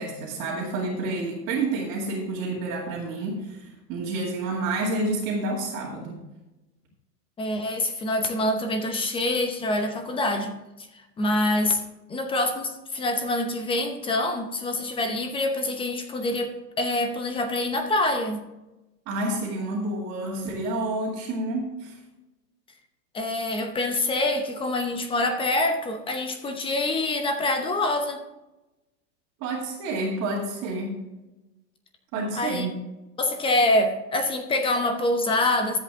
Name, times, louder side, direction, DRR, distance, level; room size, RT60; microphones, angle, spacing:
voice 1, 0.0-6.2 19.1-22.0 29.4-31.0 32.1-32.7, right 2 dB, 35° right, -5 dB, 2.4 m, -29 dB
voice 2, 7.4-10.9 11.2-11.8 12.1-18.4 23.1-28.2 32.3-32.7 33.2-35.8, left 2 dB, 10° left, 6 dB, 0.8 m, -25 dB
13.0 x 8.1 x 3.6 m, 1.0 s
hypercardioid pair, 140°, 50 cm